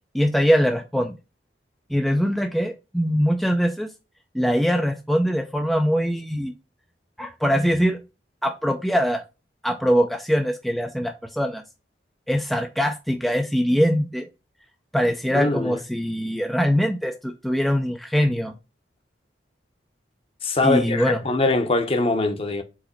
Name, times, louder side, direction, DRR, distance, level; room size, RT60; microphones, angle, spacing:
voice 1, 0.1-1.2 1.9-3.9 4.3-6.5 7.2-8.0 8.4-9.2 9.6-11.6 12.3-14.3 14.9-18.5 20.6-21.2, equal, ahead, 0.5 m, -22 dB
voice 2, 15.3-15.8 20.4-22.6, left 2 dB, 35° left, 1.0 m, -22 dB
5.0 x 3.9 x 5.1 m
head